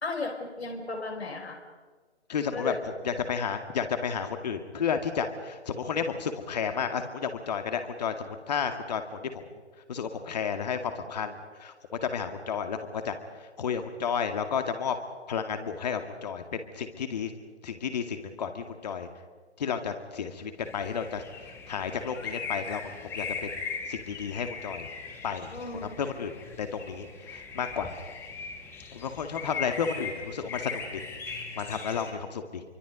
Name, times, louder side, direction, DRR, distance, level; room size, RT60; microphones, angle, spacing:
voice 1, 0.0-1.6 2.5-2.8 25.5-26.0, left 3 dB, 65° left, 3 dB, 4.7 m, -35 dB
voice 2, 2.3-2.7 3.0-9.2 9.9-11.7 12.0-13.2 13.6-14.9 15.3-17.3 17.6-19.1 19.6-21.2 21.7-23.3 23.9-24.9 25.2-25.5 26.0-26.3 26.6-27.9 28.9-31.0 31.6-32.6, left 6 dB, 35° left, 7 dB, 2.3 m, -32 dB
sound 1, 20.6-32.1, left 5 dB, 5° left, 1.3 m, -39 dB
28.0 x 24.0 x 5.3 m, 1.4 s
figure-of-eight pair, 145°, 34 cm